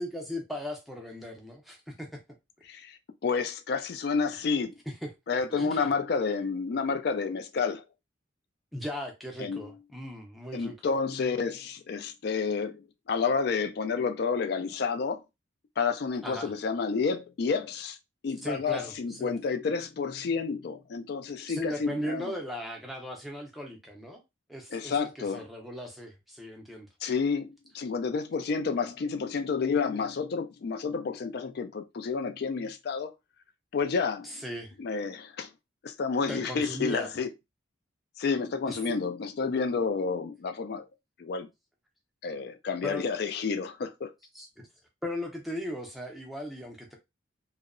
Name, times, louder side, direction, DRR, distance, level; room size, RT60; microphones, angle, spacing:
voice 1, 0.0-2.2 4.4-4.6 5.0-5.1 5.5-6.3 8.7-10.9 16.2-16.5 18.4-19.3 21.5-24.2 24.5-26.9 34.2-34.8 36.3-37.1 38.7-39.0 42.8-43.1 44.3-44.7 45.0-47.0, equal, ahead, 0.5 m, -38 dB
voice 2, 2.7-4.7 5.3-7.8 9.4-9.6 10.5-15.2 15.8-18.0 18.2-22.3 24.7-25.4 27.0-33.1 33.7-34.3 34.8-35.5 35.8-37.3 38.2-40.8 41.2-41.5 42.2-44.1, left 5 dB, 50° left, 0.3 m, -30 dB
2.7 x 2.0 x 2.5 m
head